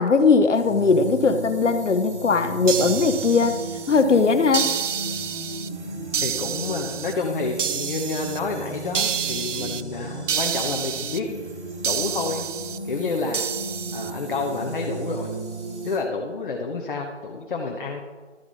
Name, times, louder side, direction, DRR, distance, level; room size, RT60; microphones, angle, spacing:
voice 1, 0.0-3.6 3.9-4.8, left 4 dB, 80° left, 9 dB, 0.9 m, -19 dB
sound 1, 0.5-16.0, right 2 dB, 70° right, 2.6 m, -35 dB
sound 2, 2.7-4.0 4.5-5.7 6.1-7.1 7.6-8.4 8.9-9.8 10.3-11.2 11.8-12.8 13.3-14.1, right 8 dB, 90° right, 0.6 m, -28 dB
voice 2, 6.2-11.3 11.8-12.4 12.8-13.5 13.9-15.3 15.8-18.0, left 4 dB, 45° left, 1 dB, 1.2 m, -29 dB
12.5 x 7.0 x 4.1 m, 1.4 s
figure-of-eight pair, 160°, 36 cm